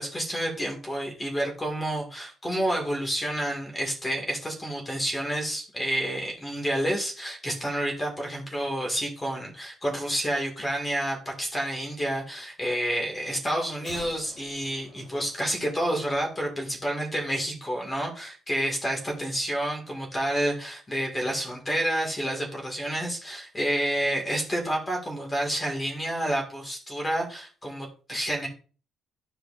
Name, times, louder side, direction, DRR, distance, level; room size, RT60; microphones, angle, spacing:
voice 1, 0.0-28.5, right 1 dB, 15° left, 1 dB, 1.9 m, -29 dB
sound 1, 13.8-16.2 16.5-16.6, left 3 dB, 70° left, 2.4 m, -49 dB
11.5 x 4.8 x 2.5 m, 0.38 s
cardioid pair, 130°, 0 cm